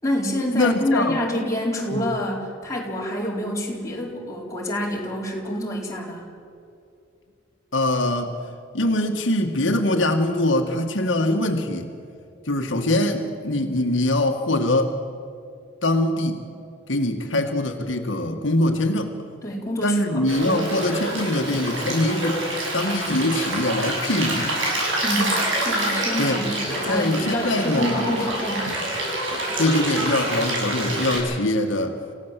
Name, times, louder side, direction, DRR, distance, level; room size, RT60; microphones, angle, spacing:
voice 1, 0.0-6.3 19.4-20.7 25.0-28.6, equal, 15° left, -3 dB, 4.4 m, -27 dB
voice 2, 0.5-1.2 1.9-2.0 7.7-8.3 8.7-11.9 12.5-15.0 15.8-16.4 16.9-19.1 19.8-22.4 22.7-24.6 26.2-26.4 26.9-27.9 29.6-32.0, left 1 dB, 85° left, 3 dB, 1.9 m, -23 dB
Stream, 20.3-31.2, right 1 dB, 85° right, 7.7 m, -27 dB
27.5 x 16.5 x 7.7 m, 2.5 s
head